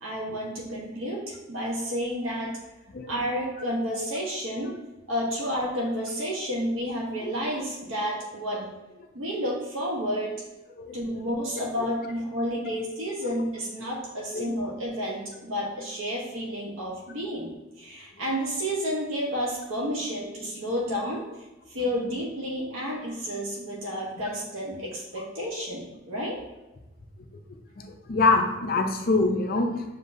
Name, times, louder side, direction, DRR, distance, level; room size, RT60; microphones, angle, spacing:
voice 1, 0.0-2.6 3.1-4.7 5.1-8.7 9.1-10.3 10.9-21.2 21.7-26.4, equal, 70° right, -4 dB, 0.9 m, -31 dB
voice 2, 27.8-29.8, left 3 dB, 45° left, 4 dB, 0.5 m, -25 dB
6.6 x 2.7 x 2.6 m, 1.1 s
head